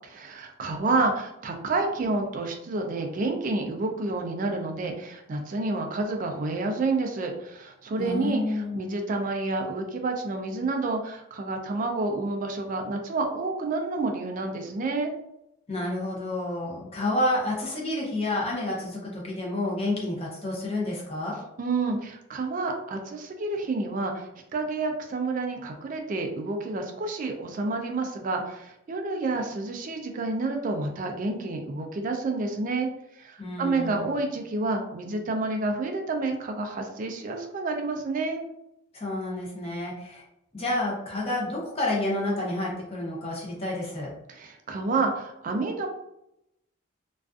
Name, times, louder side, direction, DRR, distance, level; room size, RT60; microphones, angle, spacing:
voice 1, 0.1-15.1 21.6-32.9 33.1-38.4 44.3-45.9, right 3 dB, 40° right, 3 dB, 0.3 m, -29 dB
voice 2, 8.0-8.8 15.7-21.3 33.4-34.2 38.9-40.2 40.5-44.1, left 1 dB, 30° left, -4 dB, 0.6 m, -29 dB
2.4 x 2.3 x 2.3 m, 0.84 s
head